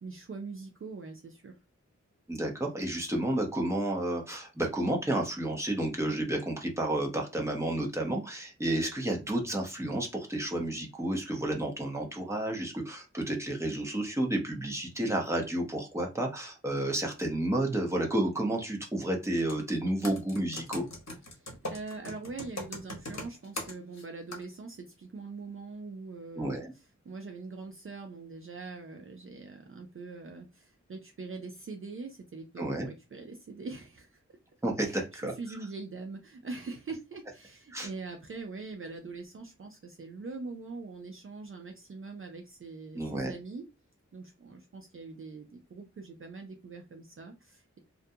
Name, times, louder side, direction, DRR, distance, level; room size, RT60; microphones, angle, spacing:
voice 1, 0.0-1.5 21.3-34.2 34.8-43.7 44.1-47.8, right 3 dB, 45° right, 3 dB, 0.5 m, -43 dB
voice 2, 2.3-20.9 26.4-26.7 32.6-32.9 34.6-35.3 37.7-37.9 43.0-43.3, right 1 dB, 10° right, 1 dB, 0.7 m, -31 dB
Computer keyboard, 19.4-19.6 20.0-24.0 24.3-24.4, left 1 dB, 65° left, 0.9 m, -39 dB
2.5 x 2.2 x 2.6 m, 0.26 s
wide cardioid pair, 85°, 29 cm